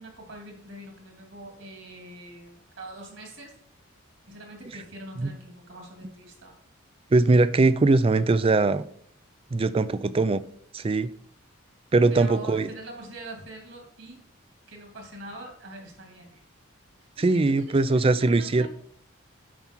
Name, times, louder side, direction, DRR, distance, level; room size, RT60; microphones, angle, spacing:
voice 1, 0.0-3.5 4.2-6.6 12.1-14.2 14.7-16.4 17.2-18.7, right 1 dB, 65° right, 2 dB, 2.4 m, -43 dB
voice 2, 7.1-8.8 9.5-10.4 10.7-11.1 11.9-12.7 17.2-18.7, right 3 dB, 25° right, 15 dB, 0.4 m, -21 dB
9.2 x 5.8 x 4.4 m, 0.63 s
head